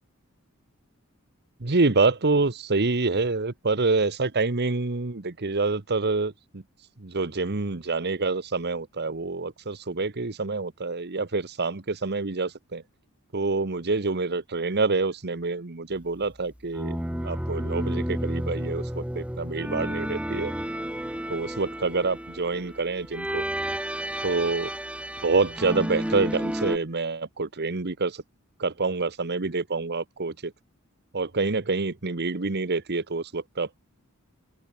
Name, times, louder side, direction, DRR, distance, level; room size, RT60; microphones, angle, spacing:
voice 1, 1.6-6.6 7.0-12.8 13.3-17.0 17.2-20.5 21.3-23.4 24.2-24.7 25.2-28.2 28.6-30.5 31.1-33.8, right 3 dB, 50° right, 1.2 m, -27 dB
sound 1, 16.7-26.8, equal, 5° right, 1.6 m, -31 dB
open air
head